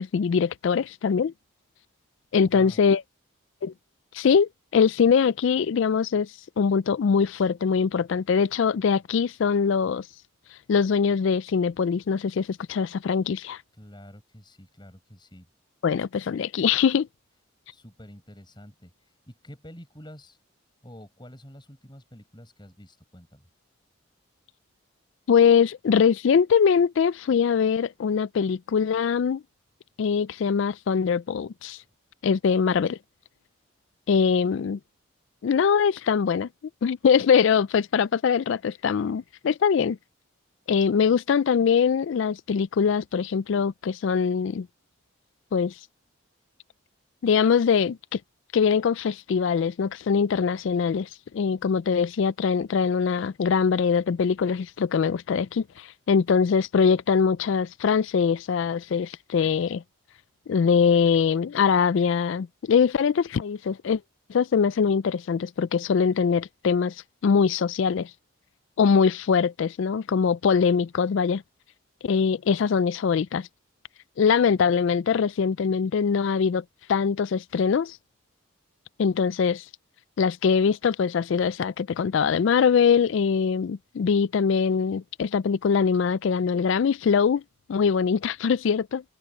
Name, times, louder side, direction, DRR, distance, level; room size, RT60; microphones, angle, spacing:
voice 1, 0.0-1.3 2.3-3.0 3.6-3.7 4.1-6.3 6.6-10.0 10.7-13.6 15.8-17.1 25.3-29.4 30.0-31.8 32.2-33.0 34.1-34.8 35.4-36.5 36.8-40.0 40.7-44.7 45.5-45.7 47.2-48.2 48.5-59.8 60.5-64.0 64.3-66.9 67.2-68.1 68.8-71.4 72.0-73.5 74.2-76.6 76.9-78.0 79.0-79.6 80.2-87.4 87.7-89.0, left 6 dB, 60° left, 0.3 m, -22 dB
voice 2, 2.4-2.9 13.7-15.5 17.7-20.4 20.8-23.5, equal, 20° left, 7.8 m, -48 dB
head